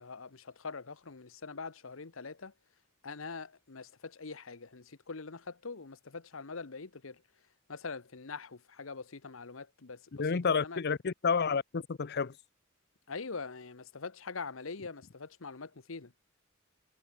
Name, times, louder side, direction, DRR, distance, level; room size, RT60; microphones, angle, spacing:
voice 1, 0.0-2.5 3.0-7.2 7.7-10.8 13.1-16.1, left 4 dB, 70° left, 1.1 m, -43 dB
voice 2, 10.1-12.3, left 5 dB, 50° left, 0.6 m, -30 dB
head